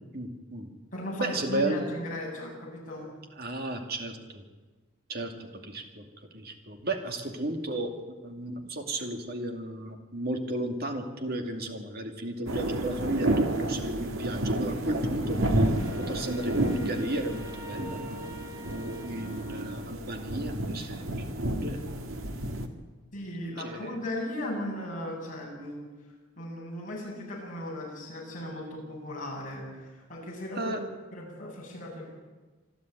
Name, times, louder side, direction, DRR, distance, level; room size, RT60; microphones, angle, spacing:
voice 1, 0.1-0.7 1.2-1.8 3.4-4.4 5.1-15.7 16.0-18.0 18.7-21.1 21.4-21.8 23.6-23.9 30.6-30.8, right 1 dB, 45° right, 4 dB, 2.4 m, -34 dB
voice 2, 0.9-3.1 23.1-25.9 26.4-30.8 31.1-32.1, left 1 dB, 40° left, -3 dB, 7.4 m, -37 dB
sound 1, 12.5-22.7, right 1 dB, 80° right, 1.9 m, -30 dB
Wind instrument woodwind instrument, 15.6-20.2, equal, 15° right, 2.1 m, -45 dB
26.5 x 11.5 x 9.2 m, 1.3 s
head